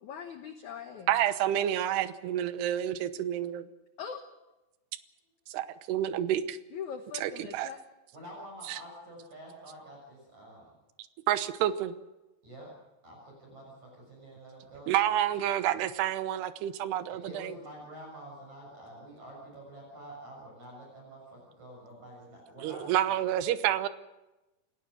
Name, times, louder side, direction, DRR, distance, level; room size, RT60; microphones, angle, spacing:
voice 1, 0.0-1.1 4.0-4.2 6.7-7.8, left 7 dB, 80° left, 6 dB, 1.7 m, -41 dB
voice 2, 1.1-3.6 5.5-6.6 7.1-7.7 8.7-8.8 11.3-11.9 14.9-17.5 22.6-23.9, right 11 dB, 75° right, 12 dB, 2.8 m, -29 dB
voice 3, 8.1-10.7 12.4-12.7 13.0-15.0 17.1-23.1, right 1 dB, 40° right, -1 dB, 7.9 m, -48 dB
29.0 x 17.0 x 6.4 m, 1.0 s
omnidirectional pair, 5.3 m